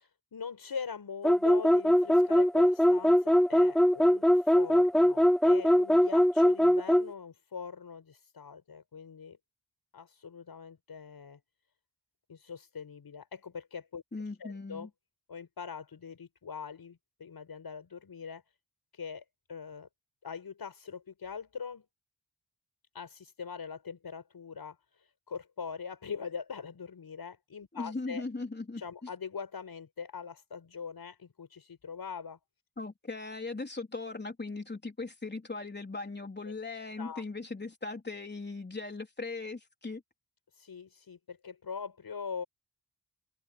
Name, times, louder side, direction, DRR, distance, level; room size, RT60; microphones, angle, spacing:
voice 1, 0.3-9.4 9.9-11.4 12.3-14.0 14.4-14.9 15.3-18.4 18.9-19.9 20.2-21.8 22.9-28.2 28.8-32.4 36.4-36.5 37.0-37.2 40.5-42.4, left 6 dB, 75° left, 6.0 m, -42 dB
sound 1, 1.2-7.1, equal, ahead, 0.3 m, -22 dB
voice 2, 14.1-14.9 27.7-28.8 32.8-40.0, left 3 dB, 25° left, 3.9 m, -39 dB
wide cardioid pair, 105°, 38 cm